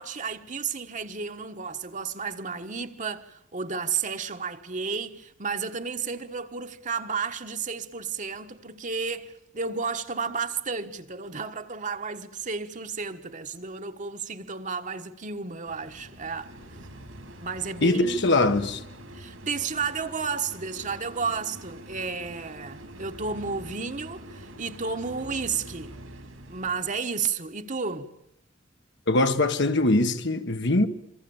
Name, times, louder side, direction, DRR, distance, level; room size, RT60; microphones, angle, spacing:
voice 1, 0.0-16.5 17.4-18.3 19.1-25.9 26.5-28.1, right 5 dB, 40° right, 1.4 m, -32 dB
sound 1, 15.7-27.0, right 1 dB, 80° right, 4.3 m, -45 dB
voice 2, 17.8-18.8 29.1-30.9, left 2 dB, 60° left, 1.5 m, -22 dB
27.0 x 24.5 x 7.2 m
head